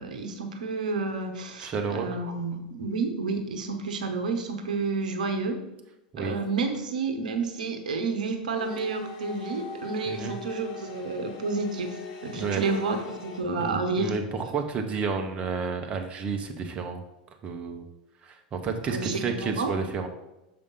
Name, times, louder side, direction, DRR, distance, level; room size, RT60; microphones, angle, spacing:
voice 1, 0.0-5.6 6.2-14.1 18.9-19.7, right 4 dB, 70° right, 5 dB, 1.0 m, -30 dB
voice 2, 1.6-2.1 6.1-6.4 10.1-10.4 12.3-12.7 13.6-17.0 17.4-17.9 18.2-20.1, right 5 dB, 30° right, 4 dB, 0.9 m, -31 dB
sound 1, 8.5-13.4, left 4 dB, 50° left, 1.3 m, -41 dB
6.7 x 5.3 x 4.0 m, 0.96 s
figure-of-eight pair, 85°, 4 cm